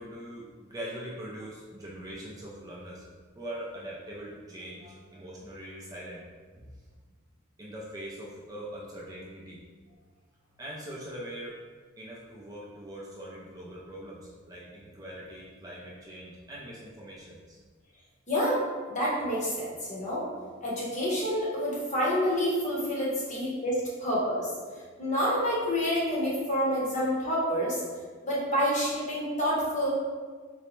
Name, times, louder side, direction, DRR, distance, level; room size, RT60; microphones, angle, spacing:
voice 1, 0.0-3.0 3.4-6.2 6.6-6.7 7.6-9.6 10.6-11.6 12.0-17.6, right 1 dB, 20° right, -5 dB, 0.4 m, -42 dB
voice 2, 18.3-18.6 18.9-20.2 20.6-24.5 25.0-27.8 28.2-29.9, equal, 35° left, -6 dB, 0.9 m, -28 dB
3.8 x 2.1 x 3.0 m, 1.5 s
head